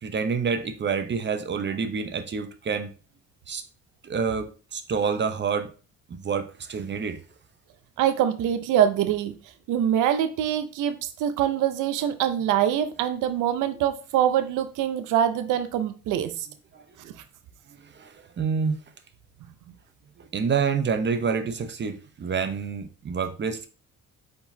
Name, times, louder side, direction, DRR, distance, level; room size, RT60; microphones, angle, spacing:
voice 1, 0.0-2.9 3.5-3.6 4.0-5.7 6.1-7.2 16.7-16.8 17.7-18.8 20.2-23.7, right 5 dB, 35° right, 0.7 m, -28 dB
voice 2, 8.0-9.3 9.7-16.5 17.0-17.1, right 10 dB, 90° right, 0.5 m, -24 dB
4.6 x 3.9 x 2.7 m
cardioid pair, 90°, 30 cm